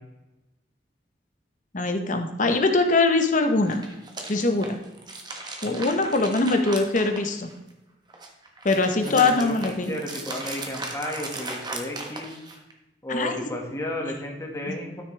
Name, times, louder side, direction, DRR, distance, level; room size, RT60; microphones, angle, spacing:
voice 1, 1.7-3.8 4.3-4.8 5.6-7.5 8.6-9.9 13.1-13.4, left 3 dB, 45° left, 6 dB, 0.9 m, -22 dB
sound 1, 3.6-7.7 8.1-12.7, right 3 dB, 25° right, 1.4 m, -37 dB
voice 2, 9.0-12.3 13.0-15.0, left 1 dB, 15° left, 0 dB, 1.7 m, -33 dB
13.0 x 6.5 x 3.4 m, 1.0 s
head